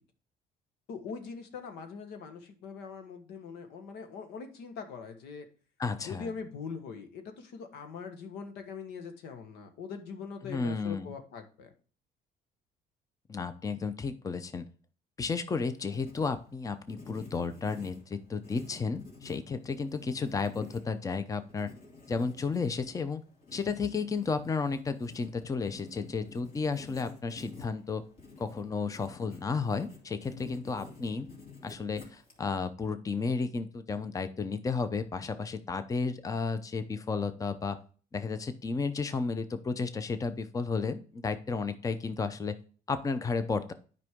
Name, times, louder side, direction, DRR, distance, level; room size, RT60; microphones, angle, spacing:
voice 1, 0.9-5.5 6.0-11.7 30.4-30.6, left 5 dB, 85° left, 6 dB, 1.4 m, -42 dB
voice 2, 5.8-6.3 10.4-11.1 13.3-14.7 15.2-21.7 22.1-23.2 23.5-28.0 28.4-31.3 31.6-37.8 38.1-42.6 42.9-43.7, left 4 dB, 20° left, 11 dB, 0.6 m, -33 dB
Writing, 15.5-32.7, left 4 dB, 50° left, 3.0 m, -51 dB
9.5 x 5.2 x 3.6 m, 0.40 s
cardioid pair, 110°, 17 cm